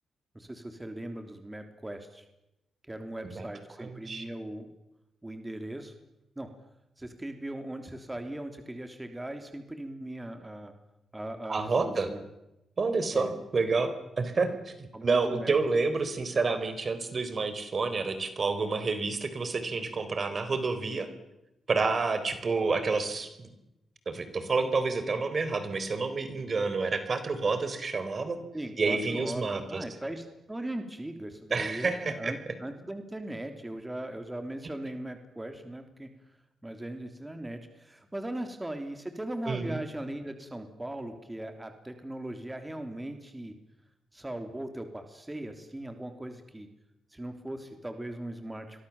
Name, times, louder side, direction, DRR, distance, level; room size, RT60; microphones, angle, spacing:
voice 1, 0.4-2.2 2.9-4.7 5.2-5.9 6.4-6.5 7.0-10.7 11.1-12.3 13.1-13.3 14.9-15.5 28.5-36.1 36.6-43.5 44.1-46.7 47.1-48.9, right 1 dB, 15° right, 6 dB, 3.4 m, -39 dB
voice 2, 3.8-4.2 11.5-12.1 12.8-21.1 21.7-23.5 24.1-28.4 28.8-29.8 31.5-32.3 39.5-39.8, right 4 dB, 45° right, 10 dB, 3.9 m, -29 dB
29.5 x 24.0 x 7.3 m, 0.93 s
cardioid pair, 70°, 0 cm